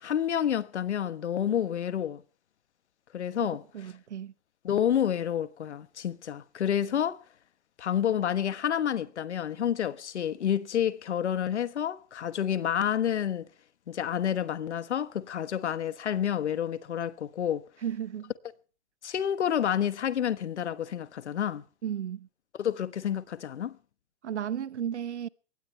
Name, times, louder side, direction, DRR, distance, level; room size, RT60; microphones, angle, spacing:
voice 1, 0.0-2.2 3.1-3.6 4.6-7.2 7.8-13.5 13.9-17.6 19.0-21.6 22.6-23.8, left 9 dB, 80° left, 1.4 m, -29 dB
voice 2, 3.7-4.3 17.8-18.3 21.8-22.3 24.2-25.3, right 9 dB, 90° right, 1.1 m, -34 dB
22.5 x 18.0 x 3.3 m
hypercardioid pair, 140°, 34 cm